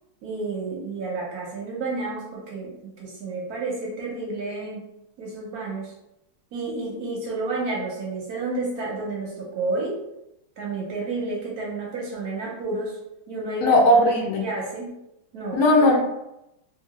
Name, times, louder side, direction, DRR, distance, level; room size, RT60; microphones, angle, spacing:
voice 1, 0.2-4.8 5.2-5.9 6.5-10.0 10.6-13.0 13.3-13.8 14.0-14.1 14.4-15.0 15.3-15.6, right 3 dB, 65° right, -3 dB, 0.9 m, -30 dB
voice 2, 13.6-14.4 15.5-16.0, left 1 dB, 70° left, 0 dB, 0.9 m, -17 dB
2.9 x 2.6 x 2.9 m, 0.87 s
omnidirectional pair, 2.1 m